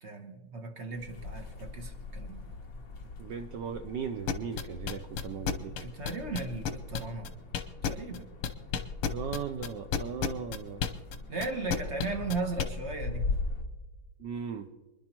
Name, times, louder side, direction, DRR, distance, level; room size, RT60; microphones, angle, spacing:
voice 1, 0.0-2.5 5.8-7.3 7.8-8.3 11.3-13.3, right 3 dB, 50° right, 4 dB, 0.8 m, -36 dB
sound 1, 1.0-13.6, left 3 dB, 45° left, 1.6 m, -41 dB
voice 2, 3.2-5.7 9.1-10.8 14.2-14.7, right 7 dB, 70° right, 7 dB, 1.1 m, -37 dB
sound 2, 4.3-8.2 8.4-12.6, left 7 dB, 85° left, 1.8 m, -31 dB
27.0 x 10.5 x 2.9 m, 1.2 s
omnidirectional pair, 2.4 m